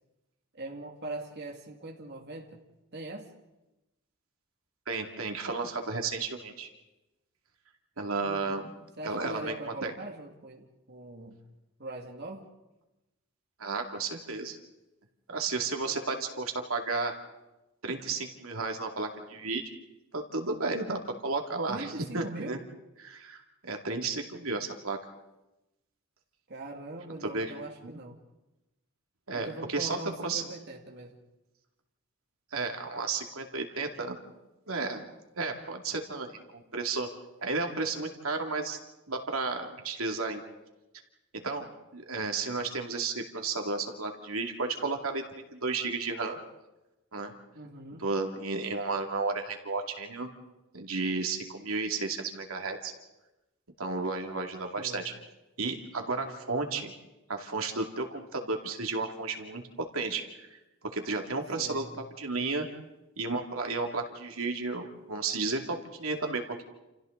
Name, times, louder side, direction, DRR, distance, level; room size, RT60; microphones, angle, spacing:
voice 1, 0.5-2.6 2.9-3.3 8.2-8.6 9.0-11.4 11.8-12.5 21.7-22.6 26.5-28.3 29.3-31.2 47.5-48.0 54.8-55.1 61.6-62.0, right 2 dB, 50° right, 1 dB, 2.3 m, -41 dB
voice 2, 4.9-6.7 8.0-8.7 9.0-9.5 9.8-9.9 13.6-14.6 15.3-17.1 17.8-19.6 20.1-22.6 23.0-25.0 27.2-27.5 27.8-27.9 29.3-30.0 30.2-30.4 32.5-34.2 34.7-35.1 35.4-37.1 37.4-38.8 39.1-40.4 41.3-46.4 47.1-47.3 48.0-50.3 50.7-52.9 53.8-55.0 55.6-56.9 57.3-59.6 59.9-60.6 60.9-61.8 62.2-62.7 63.2-66.6, right 3 dB, 75° right, 3 dB, 2.6 m, -33 dB
29.5 x 29.0 x 4.0 m, 0.99 s
head